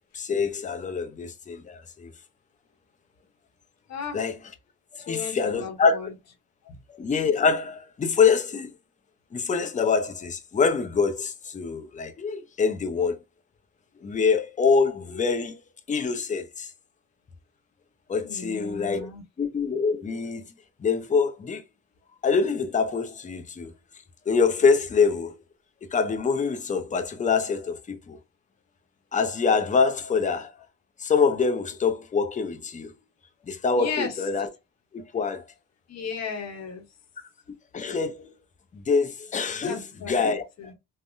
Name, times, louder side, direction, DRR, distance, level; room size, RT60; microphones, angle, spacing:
voice 1, 0.1-2.1 4.1-4.3 5.0-6.0 6.9-8.7 9.3-13.2 14.0-15.6 15.9-16.7 18.1-19.1 19.4-20.4 20.8-21.6 22.2-23.7 24.3-25.3 25.9-28.2 29.1-30.5 31.0-32.9 33.5-34.5 34.9-35.4 37.7-38.3 38.7-39.8 40.1-40.4, left 5 dB, 25° left, 0.5 m, -25 dB
voice 2, 3.9-4.2 5.0-6.1 6.6-6.8 18.2-19.2 33.7-34.3 35.9-36.8 39.6-40.7, left 6 dB, 60° left, 1.0 m, -35 dB
3.7 x 2.1 x 2.5 m
cardioid pair, 90°, 30 cm